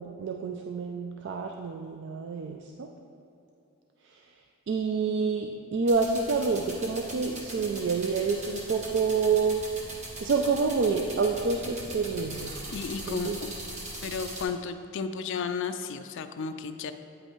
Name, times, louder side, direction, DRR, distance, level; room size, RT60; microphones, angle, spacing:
voice 1, 0.0-2.9 4.7-9.6 10.2-12.5 13.1-13.4, right 4 dB, 50° right, 2 dB, 0.3 m, -28 dB
sound 1, 5.9-14.4, right 1 dB, 30° right, 0.9 m, -40 dB
voice 2, 12.7-13.5 14.0-16.9, left 5 dB, 55° left, 9 dB, 0.3 m, -33 dB
8.6 x 5.4 x 3.1 m, 2.8 s
head